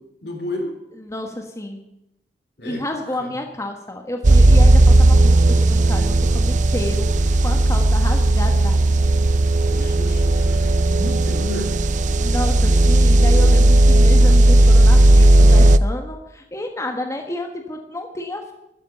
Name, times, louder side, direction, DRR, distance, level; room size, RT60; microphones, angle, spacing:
voice 1, 0.2-0.7 2.6-2.8 3.2-3.3 9.7-11.7, left 1 dB, 70° left, 3 dB, 4.1 m, -31 dB
voice 2, 1.0-1.9 2.6-8.8 12.2-18.5, left 1 dB, 20° left, 3 dB, 1.4 m, -30 dB
sound 1, 4.2-15.8, right 1 dB, 45° right, 0.5 m, -14 dB
13.0 x 9.8 x 10.0 m, 0.85 s
head